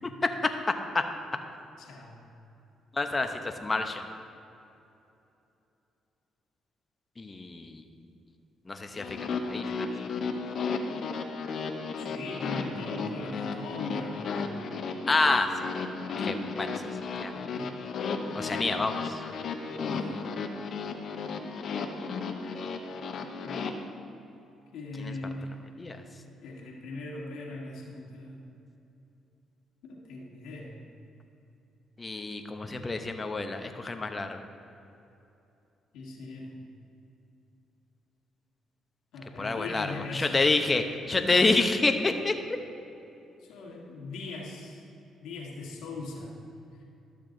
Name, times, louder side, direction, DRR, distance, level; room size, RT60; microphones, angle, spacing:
voice 1, 1.8-2.2 11.9-14.3 17.3-17.7 19.6-20.1 23.4-23.9 24.7-25.5 26.0-26.1 26.4-28.4 29.8-30.8 35.9-36.5 39.1-40.4 41.1-41.9 43.4-44.8 45.2-46.4, left 2 dB, 80° left, -2 dB, 1.7 m, -40 dB
voice 2, 2.9-4.1 7.2-7.8 8.7-9.9 15.1-15.5 16.2-16.9 17.2-17.4 18.3-19.2 25.0-25.1 25.8-26.0 32.0-34.4 39.4-42.3, left 3 dB, 25° left, 6 dB, 0.8 m, -28 dB
sound 1, 9.0-23.7, left 4 dB, 60° left, 0.8 m, -34 dB
12.5 x 6.8 x 3.9 m, 2.8 s
supercardioid pair, 70°, 0 cm